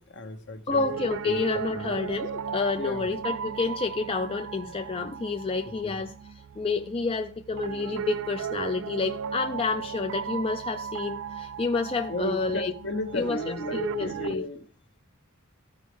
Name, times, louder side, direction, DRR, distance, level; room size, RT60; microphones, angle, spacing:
voice 1, 0.0-1.4 1.7-1.9 2.8-3.1 5.8-6.0 12.1-14.6, left 1 dB, 55° left, 1.0 m, -35 dB
voice 2, 0.7-6.1 6.6-12.7 13.1-14.5, left 4 dB, 25° left, 0.4 m, -29 dB
Piano, 0.7-14.4, right 7 dB, 60° right, 0.3 m, -36 dB
14.0 x 5.1 x 3.3 m
head